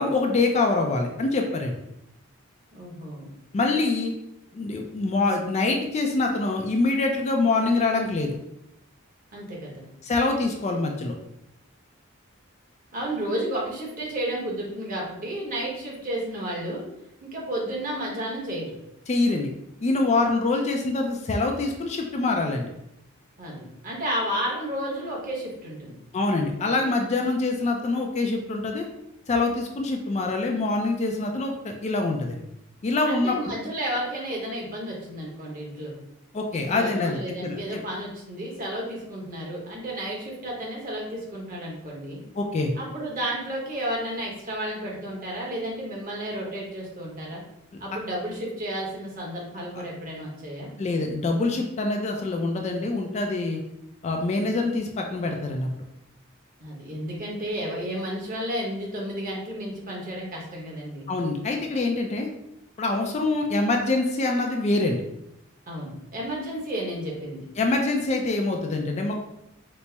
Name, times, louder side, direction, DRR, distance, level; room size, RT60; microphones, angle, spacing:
voice 1, 0.0-1.7 3.5-4.1 4.5-8.4 10.0-11.1 19.1-19.5 19.8-22.7 26.1-28.9 29.3-32.4 32.8-33.4 36.3-37.8 42.4-42.7 50.8-53.6 54.0-55.7 61.1-62.3 62.8-65.0 67.6-69.1, left 3 dB, 30° left, 2 dB, 0.3 m, -25 dB
voice 2, 2.7-3.3 9.3-9.9 12.9-16.8 17.2-18.8 23.4-26.0 33.0-35.9 36.5-42.2 42.8-47.4 47.8-50.7 56.6-61.1 65.7-67.4, equal, 40° right, -3 dB, 1.0 m, -32 dB
4.1 x 2.0 x 3.3 m, 0.82 s
head